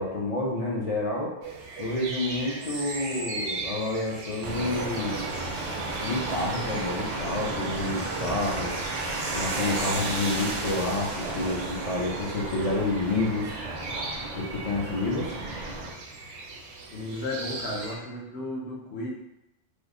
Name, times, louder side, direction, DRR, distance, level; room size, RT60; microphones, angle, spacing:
voice 1, 0.0-1.3 1.8-5.2 6.0-8.7 9.3-13.5 14.3-15.3, left 2 dB, 50° left, -3 dB, 0.4 m, -29 dB
sound 1, 1.4-17.9, right 3 dB, 85° right, 0.9 m, -39 dB
sound 2, 4.4-15.9, right 2 dB, 50° right, 0.5 m, -33 dB
voice 2, 16.9-19.1, left 1 dB, 70° left, -2 dB, 1.0 m, -34 dB
3.4 x 2.0 x 3.6 m, 0.88 s
omnidirectional pair, 1.2 m